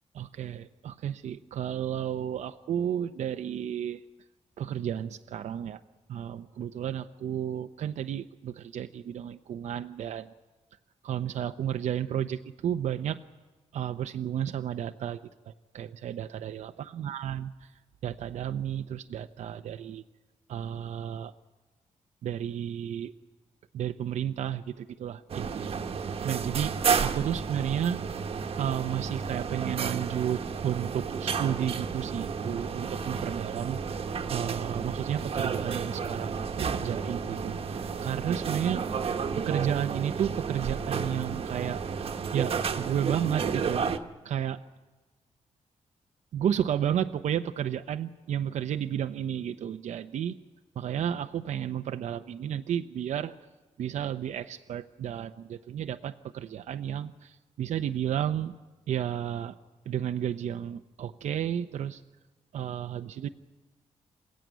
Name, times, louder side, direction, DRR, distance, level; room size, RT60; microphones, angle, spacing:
voice 1, 0.2-4.0 4.6-5.8 6.1-10.3 11.0-13.2 13.7-15.2 15.5-17.7 18.0-20.0 20.5-21.3 22.2-23.1 23.7-26.7 27.0-28.0 28.6-34.0 34.3-38.8 39.3-41.8 42.3-43.9 44.2-44.6 46.3-50.3 50.8-53.3 53.8-58.5 58.9-59.6 59.9-62.0 62.5-63.3, right 10 dB, 75° right, 8 dB, 0.7 m, -32 dB
sound 1, 25.3-44.0, right 6 dB, 50° right, 1.2 m, -32 dB
27.5 x 15.5 x 9.3 m, 1.2 s
wide cardioid pair, 150°, 12 cm